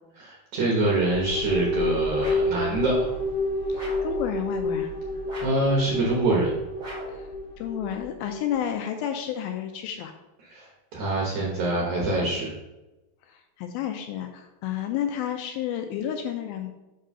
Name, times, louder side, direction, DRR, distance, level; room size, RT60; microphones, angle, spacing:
voice 1, 0.2-3.1 5.4-6.5 10.4-12.5, right 2 dB, 70° right, -3 dB, 1.8 m, -25 dB
sound 1, 1.0-8.5, left 1 dB, 55° left, 2.1 m, -29 dB
sound 2, 2.2-2.6 3.7-4.2 5.2-5.7 6.8-7.3, equal, 30° right, 1.4 m, -40 dB
voice 2, 3.7-4.9 7.1-7.3 7.6-10.1 13.3-16.7, left 10 dB, 80° left, 5 dB, 2.2 m, -31 dB
5.5 x 3.8 x 5.4 m, 1.0 s
omnidirectional pair, 4.5 m